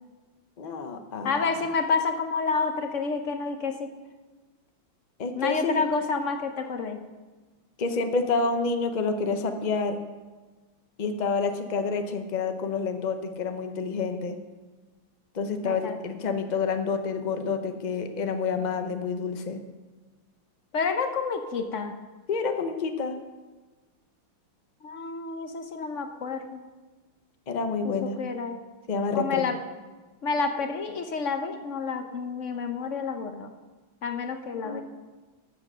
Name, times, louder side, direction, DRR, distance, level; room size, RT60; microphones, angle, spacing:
voice 1, 0.6-1.4 5.2-5.9 7.8-10.0 11.0-14.4 15.3-19.6 22.3-23.1 27.5-28.2 28.9-29.5 34.6-34.8, left 4 dB, 90° left, 6 dB, 0.4 m, -28 dB
voice 2, 1.2-3.9 5.3-7.0 15.6-15.9 20.7-21.9 24.8-26.6 27.8-28.6 29.1-29.6 30.2-33.5 34.0-34.8, left 4 dB, 55° left, 6 dB, 0.8 m, -29 dB
12.5 x 7.5 x 6.6 m, 1.3 s
omnidirectional pair, 2.2 m